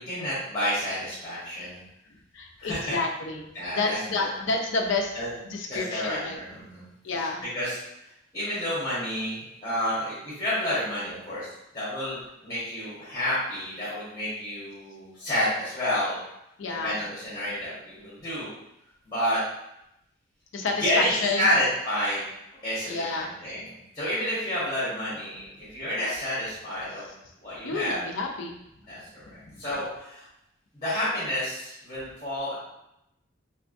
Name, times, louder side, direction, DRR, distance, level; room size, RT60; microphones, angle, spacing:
voice 1, 0.0-1.8 2.6-2.9 3.5-4.3 5.1-5.3 5.7-6.9 7.5-7.8 8.3-11.5 11.7-16.2 16.8-18.5 19.0-19.4 20.8-22.2 22.6-27.1 27.4-28.0 28.9-29.2 29.6-30.2 30.7-32.5, left 1 dB, 15° left, -10 dB, 1.3 m, -29 dB
voice 2, 2.3-5.2 5.4-6.4 7.0-7.4 16.6-17.0 20.5-21.5 22.9-23.3 27.6-28.6 29.5-29.6, left 3 dB, 70° left, 2 dB, 0.5 m, -29 dB
3.4 x 2.7 x 2.6 m, 0.83 s
head